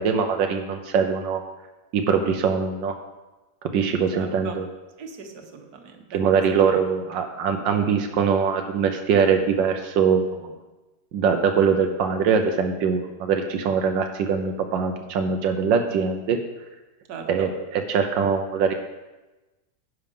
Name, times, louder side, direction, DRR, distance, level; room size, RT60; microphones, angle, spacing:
voice 1, 0.0-1.4 1.9-3.0 3.6-4.7 6.1-10.5 11.1-16.4 17.3-18.7, right 6 dB, 85° right, 5 dB, 1.5 m, -22 dB
voice 2, 4.1-4.6 5.0-6.2 6.6-6.8 17.1-17.5, right 6 dB, 60° right, 4 dB, 1.6 m, -38 dB
10.5 x 6.4 x 5.3 m, 1.1 s
omnidirectional pair, 1.9 m